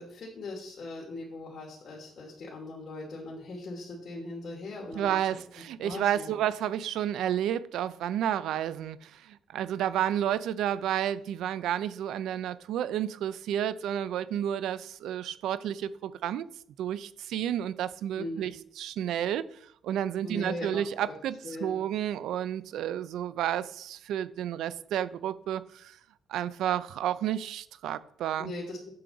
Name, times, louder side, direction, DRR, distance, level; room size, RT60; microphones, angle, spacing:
voice 1, 0.0-5.1 5.8-6.3 18.2-18.5 20.2-20.8 21.1-21.2 21.4-21.7 28.4-28.9, left 2 dB, 50° left, 2.9 m, -39 dB
voice 2, 4.9-16.5 16.8-18.5 18.8-19.5 19.8-26.0 26.3-28.5, right 10 dB, 80° right, 0.5 m, -31 dB
8.6 x 7.6 x 3.9 m
cardioid pair, 90°, 0 cm